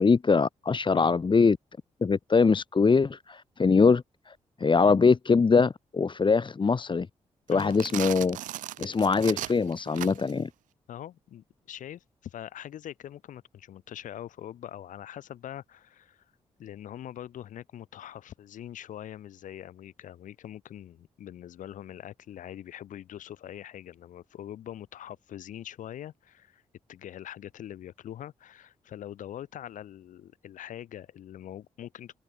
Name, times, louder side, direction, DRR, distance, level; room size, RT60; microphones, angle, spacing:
voice 1, 0.0-1.6 2.0-7.1 7.5-8.4 8.8-10.5, left 4 dB, 40° left, 1.0 m, -23 dB
sound 1, 7.5-10.4, right 14 dB, 90° right, 0.7 m, -37 dB
voice 2, 10.9-16.2 16.6-26.6 26.9-32.2, left 11 dB, 85° left, 4.5 m, -43 dB
supercardioid pair, 50°, 13 cm